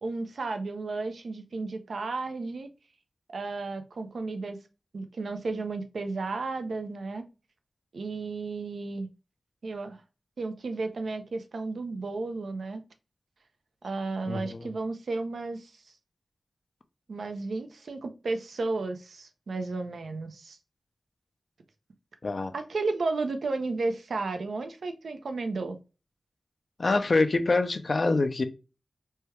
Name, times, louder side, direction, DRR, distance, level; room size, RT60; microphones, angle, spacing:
voice 1, 0.0-2.7 3.3-4.6 4.9-7.2 7.9-9.1 9.6-10.0 10.4-12.8 13.8-15.9 17.1-20.6 22.5-25.8, right 3 dB, 85° right, 0.5 m, -33 dB
voice 2, 14.3-14.6 22.2-22.5 26.8-28.4, left 3 dB, 60° left, 0.5 m, -25 dB
3.3 x 2.3 x 2.9 m
cardioid pair, 45°, 0 cm